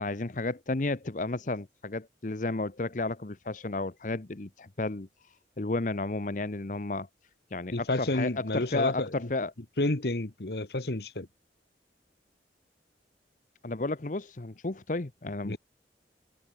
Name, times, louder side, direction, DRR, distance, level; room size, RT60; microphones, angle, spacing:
voice 1, 0.0-5.1 5.6-7.1 7.5-9.5 13.6-15.6, left 2 dB, 45° left, 0.9 m, -32 dB
voice 2, 7.7-9.3 9.8-11.3 15.4-15.6, left 2 dB, 65° left, 1.5 m, -30 dB
head